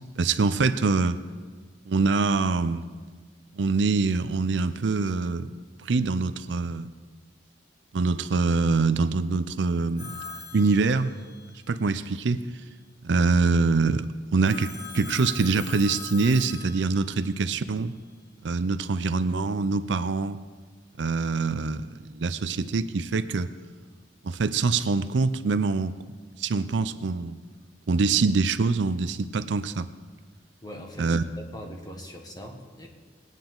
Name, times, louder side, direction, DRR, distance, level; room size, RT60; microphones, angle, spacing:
voice 1, 0.2-1.2 1.9-2.9 3.5-5.5 5.8-6.9 7.9-10.3 10.5-11.1 11.7-12.4 13.0-17.9 18.4-20.4 21.0-21.8 22.1-23.5 24.2-26.0 26.4-27.4 27.9-29.9 31.0-31.2, right 4 dB, 75° right, 12 dB, 0.5 m, -24 dB
Telephone, 10.0-11.5 14.4-17.3, left 4 dB, 60° left, 2.7 m, -41 dB
voice 2, 30.6-32.9, equal, 20° left, 2 dB, 1.6 m, -41 dB
20.5 x 9.0 x 3.9 m, 1.5 s
head